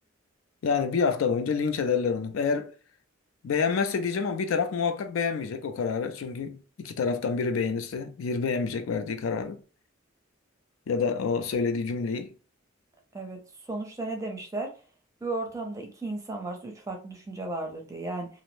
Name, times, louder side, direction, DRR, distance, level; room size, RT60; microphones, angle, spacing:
voice 1, 0.6-2.7 3.4-9.6 10.9-12.3, left 5 dB, 70° left, 0.4 m, -28 dB
voice 2, 13.7-14.7 15.2-18.3, right 2 dB, 15° right, 0.5 m, -34 dB
2.5 x 2.0 x 3.0 m
head